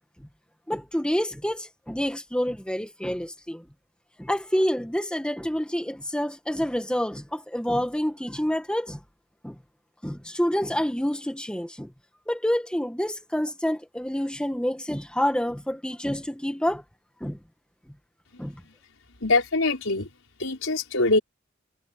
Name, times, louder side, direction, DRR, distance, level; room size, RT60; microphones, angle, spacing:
voice 1, 0.7-3.6 4.2-9.0 9.4-9.5 10.0-11.9 12.3-16.8 17.2-17.4 18.4-18.6, equal, 5° left, 1.7 m, -28 dB
voice 2, 19.2-20.1 20.4-21.2, left 2 dB, 85° left, 5.3 m, -23 dB
head